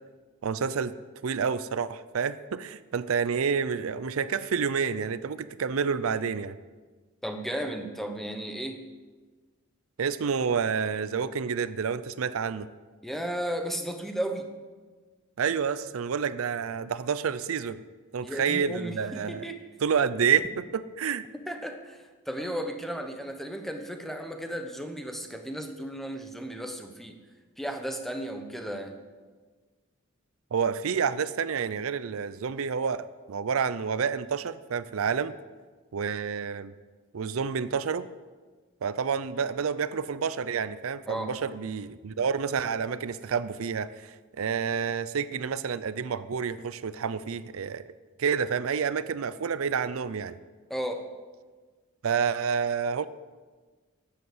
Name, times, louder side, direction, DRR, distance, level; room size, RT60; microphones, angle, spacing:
voice 1, 0.4-1.0 1.2-6.6 10.0-12.7 15.4-17.8 18.1-19.5 19.8-21.2 30.5-35.3 35.9-36.7 37.1-38.1 38.8-47.8 48.2-50.4 52.0-53.1, right 6 dB, 80° right, 15 dB, 0.5 m, -29 dB
voice 2, 7.2-8.8 13.0-14.5 18.2-19.6 21.4-27.2 27.6-29.0 41.1-41.3 50.7-51.1, right 1 dB, ahead, 5 dB, 1.0 m, -34 dB
12.0 x 8.2 x 7.8 m, 1.4 s
head